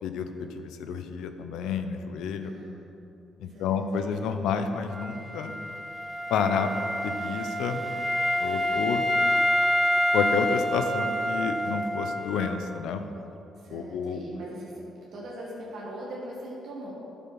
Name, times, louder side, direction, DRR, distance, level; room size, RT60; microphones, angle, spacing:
voice 1, 0.0-2.5 3.4-5.5 6.3-6.7 7.0-7.9 8.4-9.0 10.1-13.0 13.7-14.2, left 6 dB, 85° left, 8 dB, 0.7 m, -30 dB
voice 2, 2.4-2.8 3.5-3.8 13.5-14.8 15.1-16.9, right 1 dB, 70° right, -4 dB, 2.0 m, -40 dB
Wind instrument woodwind instrument, 4.9-12.7, equal, 10° right, 0.8 m, -27 dB
9.5 x 7.2 x 5.9 m, 2.9 s
cardioid pair, 90°, 0 cm